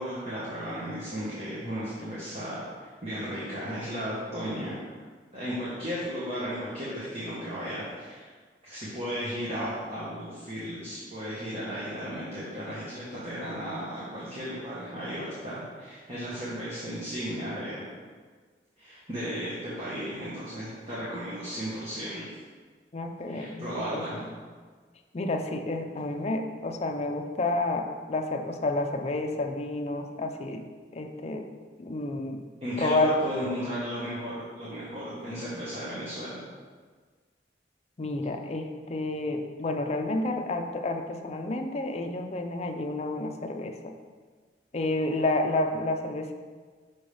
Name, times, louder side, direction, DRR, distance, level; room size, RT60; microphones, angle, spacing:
voice 1, 0.0-4.8 5.3-8.3 8.6-17.8 18.8-22.3 23.3-24.2 32.6-36.4, equal, 35° right, -9 dB, 1.4 m, -35 dB
voice 2, 22.9-24.3 25.1-30.7 30.9-31.5 31.8-32.4 32.8-33.2 38.0-43.9 44.7-46.3, left 2 dB, 35° left, 5 dB, 0.5 m, -30 dB
6.0 x 5.5 x 3.4 m, 1.5 s
head